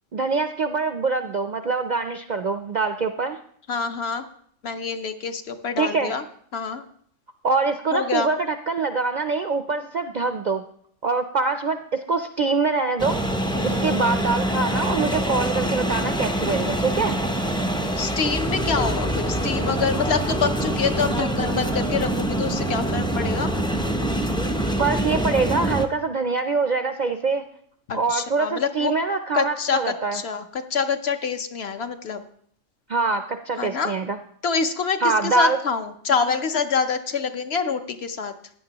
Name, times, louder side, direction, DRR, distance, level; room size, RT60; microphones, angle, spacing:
voice 1, 0.1-3.4 5.8-6.1 7.4-10.6 11.0-13.2 13.6-17.1 24.8-27.4 27.9-30.2 32.9-34.2 35.0-35.6, right 4 dB, 55° right, 7 dB, 0.5 m, -24 dB
voice 2, 3.7-4.2 4.6-6.2 6.5-6.8 7.9-8.3 13.5-13.8 17.9-23.5 27.9-28.9 29.3-32.2 33.6-33.9 34.4-38.3, left 5 dB, 60° left, 8 dB, 0.9 m, -26 dB
sound 1, 13.0-25.9, right 1 dB, 5° left, 0.4 m, -25 dB
15.5 x 9.8 x 2.9 m, 0.64 s
omnidirectional pair, 1.3 m